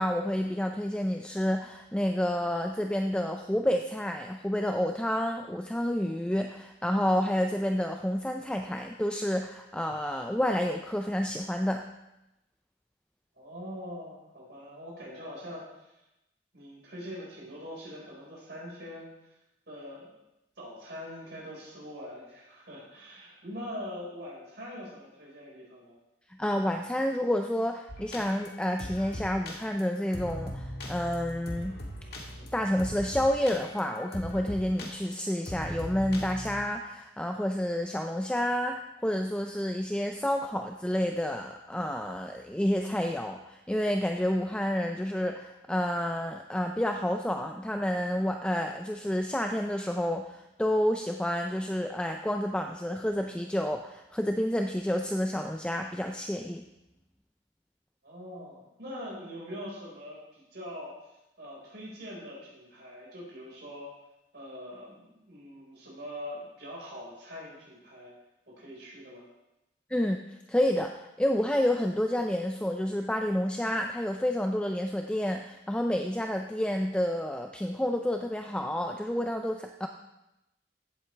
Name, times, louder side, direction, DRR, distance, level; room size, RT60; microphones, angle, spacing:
voice 1, 0.0-11.8 26.4-31.8 32.5-56.6 69.9-79.9, equal, 5° left, 4 dB, 0.4 m, -29 dB
voice 2, 13.4-15.9 16.5-19.1 19.7-20.1 20.6-26.0 58.0-60.9 61.4-63.9 64.3-68.1 68.5-69.3, equal, 65° right, -5 dB, 4.8 m, -43 dB
sound 1, 27.9-36.6, equal, 60° left, 1.8 m, -40 dB
15.5 x 8.2 x 3.3 m, 0.92 s
head